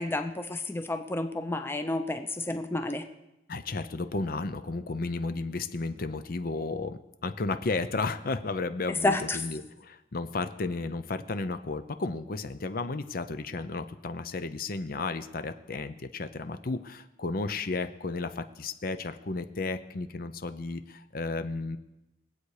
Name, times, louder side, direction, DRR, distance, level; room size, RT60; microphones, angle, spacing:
voice 1, 0.0-3.1 8.9-9.4, left 2 dB, 15° left, 7 dB, 0.7 m, -30 dB
voice 2, 3.5-21.8, left 3 dB, 55° left, 10 dB, 0.7 m, -33 dB
21.0 x 8.2 x 4.9 m, 0.94 s
head